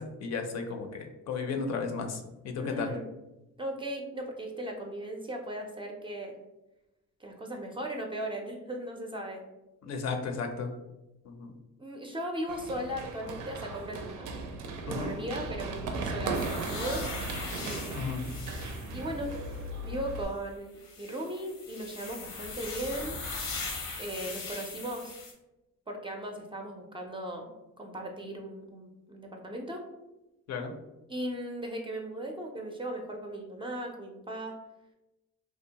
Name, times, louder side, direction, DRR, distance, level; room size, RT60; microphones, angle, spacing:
voice 1, 0.0-2.9 9.8-10.7 11.2-11.5 14.9-15.1 17.9-18.2 30.5-30.7, left 4 dB, 60° left, 5 dB, 0.5 m, -34 dB
voice 2, 2.6-3.1 3.6-6.4 7.2-9.4 11.8-14.3 14.8-18.1 18.9-19.6 19.8-23.2 24.0-25.2 25.9-29.8 31.1-34.6, right 1 dB, 15° right, 1 dB, 0.4 m, -37 dB
Run, 12.5-20.2, right 3 dB, 85° right, 0.5 m, -37 dB
sound 1, 16.3-19.6 20.8-25.3, left 3 dB, 90° left, 0.8 m, -40 dB
2.8 x 2.1 x 2.8 m, 0.98 s
cardioid pair, 90°, 30 cm